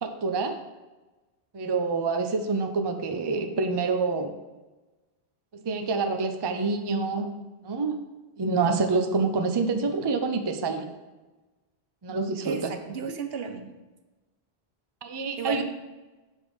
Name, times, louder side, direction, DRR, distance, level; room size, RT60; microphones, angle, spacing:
voice 1, 0.0-0.5 1.5-4.3 5.5-7.3 7.6-8.0 8.4-10.9 12.0-12.7 15.0-15.6, right 4 dB, 35° right, 6 dB, 0.4 m, -27 dB
voice 2, 12.4-13.7 15.4-15.6, right 6 dB, 70° right, 6 dB, 0.9 m, -33 dB
7.0 x 3.6 x 6.2 m, 1.2 s
omnidirectional pair, 1.1 m